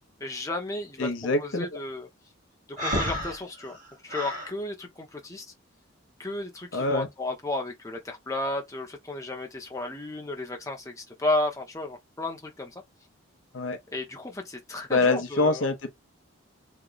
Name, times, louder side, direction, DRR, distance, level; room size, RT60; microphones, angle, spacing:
voice 1, 0.2-1.1 1.4-2.1 2.8-3.8 4.0-5.5 6.2-12.8 13.9-15.7, left 2 dB, 15° left, 0.7 m, -33 dB
voice 2, 1.0-1.7 6.7-7.1 13.5-13.8 14.9-15.9, left 2 dB, 65° left, 0.7 m, -25 dB
Breathing, 2.8-4.5, equal, 40° right, 1.1 m, -31 dB
3.1 x 2.1 x 3.8 m
head